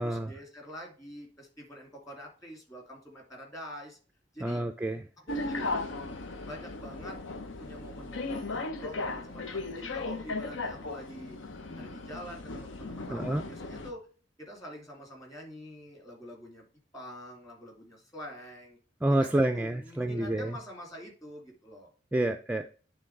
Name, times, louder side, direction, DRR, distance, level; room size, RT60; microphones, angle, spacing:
voice 1, 0.0-4.0 4.3-4.6 5.2-5.8 6.4-7.2 7.6-11.4 11.8-14.1 14.4-16.6 16.9-18.8 19.1-21.9, equal, 20° left, 0 dB, 2.6 m, -46 dB
voice 2, 4.4-5.0 13.1-13.4 19.0-20.5 22.1-22.7, right 1 dB, 10° right, 6 dB, 0.4 m, -28 dB
sound 1, 5.3-13.9, left 3 dB, 85° left, 0.9 m, -36 dB
9.1 x 3.8 x 4.7 m, 0.38 s
head